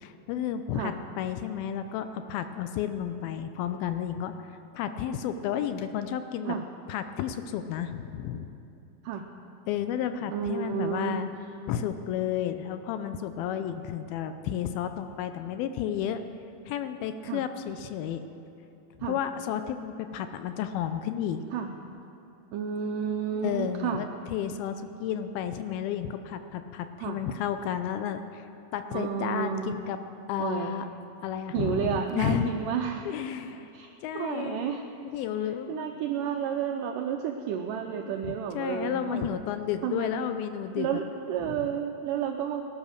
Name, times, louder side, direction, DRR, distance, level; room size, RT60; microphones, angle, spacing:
voice 1, 0.0-6.6 6.9-8.5 9.7-11.3 11.7-16.2 16.7-18.2 19.0-21.4 23.4-28.5 28.7-30.0 30.3-30.9 31.2-32.5 33.1-33.7 34.0-35.9 38.0-40.9 41.4-41.8, left 9 dB, 80° left, 9 dB, 2.4 m, -32 dB
voice 2, 10.3-11.2 17.3-17.4 19.0-19.2 21.5-21.7 22.5-24.0 27.0-27.2 28.9-29.8 30.4-30.7 31.5-33.0 33.7-33.9 34.1-34.8 35.7-39.3 39.8-40.2 40.8-42.7, right 8 dB, 80° right, 3 dB, 2.0 m, -31 dB
18.0 x 11.0 x 6.5 m, 2.7 s
omnidirectional pair, 4.4 m